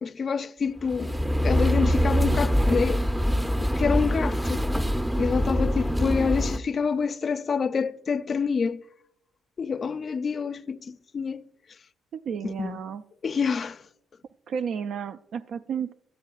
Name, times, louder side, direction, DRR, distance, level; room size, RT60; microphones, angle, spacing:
voice 1, 0.0-1.2 1.4-3.0 3.6-4.6 5.2-8.8 9.6-11.4 12.4-12.8 13.2-13.8, left 5 dB, 45° left, 0.4 m, -27 dB
sound 1, 0.8-6.6, equal, 5° right, 0.5 m, -24 dB
voice 2, 12.1-13.0 14.5-15.9, right 7 dB, 70° right, 0.3 m, -32 dB
17.0 x 11.5 x 2.4 m
cardioid pair, 90°, 0 cm